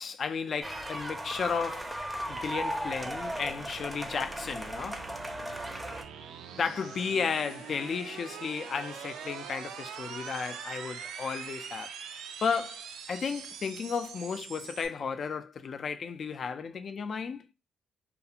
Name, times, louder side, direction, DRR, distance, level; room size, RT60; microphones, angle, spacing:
voice 1, 0.0-5.0 6.6-11.9 12.4-17.4, left 6 dB, 50° left, 0.3 m, -34 dB
sound 1, 0.6-6.0, right 1 dB, 10° right, 0.5 m, -37 dB
sound 2, 1.7-14.9, right 7 dB, 85° right, 0.3 m, -44 dB
2.4 x 2.4 x 2.8 m
cardioid pair, 90°, 0 cm